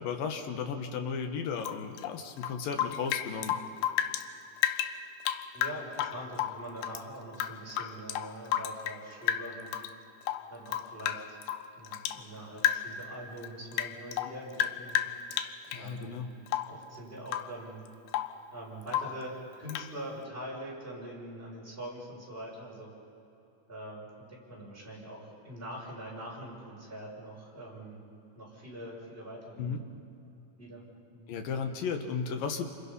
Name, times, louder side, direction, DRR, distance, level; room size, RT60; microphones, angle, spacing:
voice 1, 0.0-3.6 15.7-16.3 29.6-29.8 31.3-32.7, left 6 dB, 70° left, 5 dB, 3.1 m, -34 dB
Rain / Drip, 1.6-4.3 4.6-7.0 7.3-9.0 9.3-9.9 10.2-12.2 12.6-13.0 13.4-15.9 16.5-16.8 17.3-17.6 17.9-18.4 18.9-19.2 19.7-19.9, left 11 dB, 85° left, 2.7 m, -33 dB
voice 2, 5.5-9.8 10.5-11.4 11.7-15.0 15.7-16.2 16.7-17.8 18.5-22.9 23.7-28.0 28.3-29.8 30.6-30.8 31.1-31.3, right 1 dB, 15° right, -5 dB, 6.3 m, -43 dB
28.5 x 27.0 x 5.6 m, 2.9 s
omnidirectional pair, 4.4 m